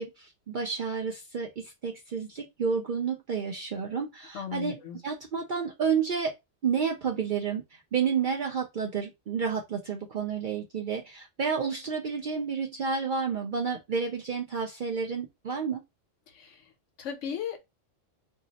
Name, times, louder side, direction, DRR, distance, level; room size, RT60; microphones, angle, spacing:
voice 1, 0.0-6.4 6.6-15.8, right 6 dB, 60° right, 0.5 m, -30 dB
voice 2, 4.3-5.0 16.4-16.6 17.0-17.6, left 8 dB, 70° left, 1.0 m, -36 dB
2.7 x 2.0 x 3.8 m
omnidirectional pair, 1.3 m